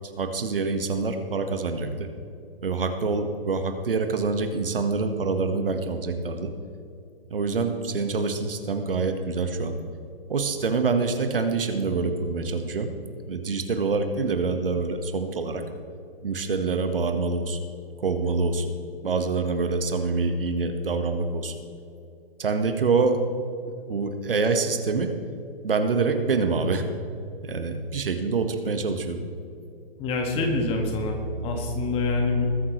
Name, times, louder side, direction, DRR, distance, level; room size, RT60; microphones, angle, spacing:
voice 1, 0.2-2.1 2.6-6.5 7.3-9.8 10.3-12.9 13.3-15.6 16.2-17.6 18.0-18.7 19.0-21.5 22.4-23.2 23.8-25.1 25.6-26.8 27.4-29.2, right 4 dB, 65° right, 7 dB, 1.5 m, -26 dB
voice 2, 30.0-32.5, left 2 dB, 20° left, 3 dB, 1.6 m, -26 dB
21.0 x 9.6 x 3.2 m, 2.6 s
figure-of-eight pair, 130°, 30 cm